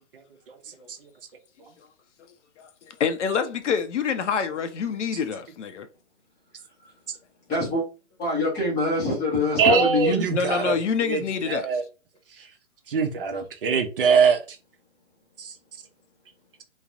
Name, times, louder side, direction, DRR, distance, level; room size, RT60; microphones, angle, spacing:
voice 1, 3.0-5.9 10.3-11.7, left 6 dB, 70° left, 0.6 m, -26 dB
voice 2, 7.5-7.8 8.2-10.3, left 2 dB, 10° left, 0.6 m, -24 dB
voice 3, 9.6-10.8 11.0-11.8 12.9-14.6 15.4-15.5, right 5 dB, 50° right, 0.5 m, -22 dB
3.1 x 2.0 x 2.4 m
hypercardioid pair, 155°, 37 cm